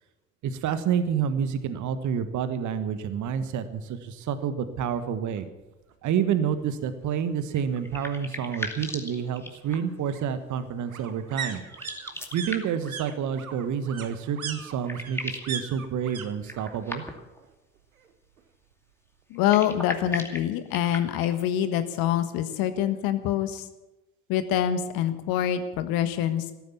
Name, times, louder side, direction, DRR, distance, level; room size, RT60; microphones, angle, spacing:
voice 1, 0.4-5.5 6.0-11.6 12.3-17.0, right 8 dB, 45° right, 11 dB, 1.5 m, -29 dB
sound 1, 5.4-5.5 5.8-5.9 6.2-7.2 8.5-16.3 16.5-17.1 17.4-18.4 18.7-18.8, right 7 dB, 85° right, 1.3 m, -40 dB
sound 2, 7.5-10.0 11.6-12.9 14.3-14.4 14.6-15.6 16.4-17.4 19.3-21.5, left 1 dB, 5° left, 2.4 m, -37 dB
voice 2, 19.3-23.7 24.3-26.5, left 10 dB, 55° left, 10 dB, 1.5 m, -25 dB
14.5 x 13.5 x 7.2 m, 1.0 s
figure-of-eight pair, 60°, 41 cm